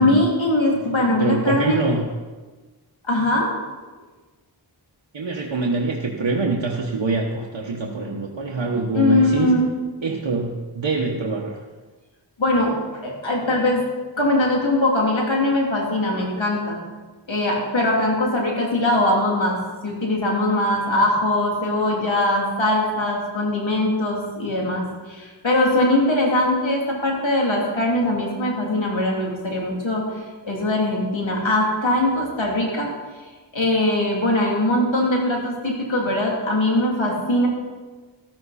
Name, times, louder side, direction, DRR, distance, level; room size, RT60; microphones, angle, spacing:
voice 1, 0.0-1.8 3.0-3.5 8.9-9.6 12.4-13.9 14.2-16.8 17.3-32.9 33.5-37.5, left 1 dB, 80° left, -2 dB, 3.0 m, -21 dB
voice 2, 1.0-2.0 5.1-9.5 10.0-11.6, right 3 dB, 80° right, -1 dB, 1.2 m, -24 dB
13.5 x 12.0 x 4.2 m, 1.3 s
wide cardioid pair, 40°, 45 cm